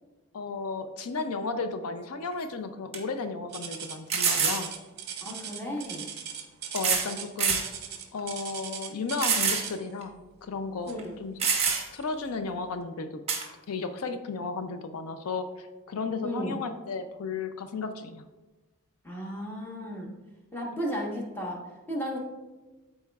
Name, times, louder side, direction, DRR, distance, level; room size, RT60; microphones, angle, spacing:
voice 1, 0.3-4.7 6.7-7.6 8.1-11.3 11.9-13.2 13.7-18.2 20.7-20.8, left 4 dB, 85° left, 9 dB, 0.5 m, -34 dB
sound 1, 2.3-2.4 2.9-3.0 4.1-4.6 5.8-5.9 6.8-7.1 7.4-7.7 8.2-8.3 9.2-9.7 10.0-10.1 11.0-11.1 11.4-12.0 13.3-13.5, right 6 dB, 30° right, 1.0 m, -26 dB
sound 2, 3.5-9.9 10.9-11.1 11.7-11.8 12.5-12.6, right 8 dB, 50° right, 0.7 m, -39 dB
voice 2, 5.2-6.1 10.9-11.2 16.2-16.6 19.0-20.1 20.5-21.6 21.9-22.2, equal, 10° left, -2 dB, 1.2 m, -34 dB
12.5 x 4.3 x 2.4 m, 1.2 s
head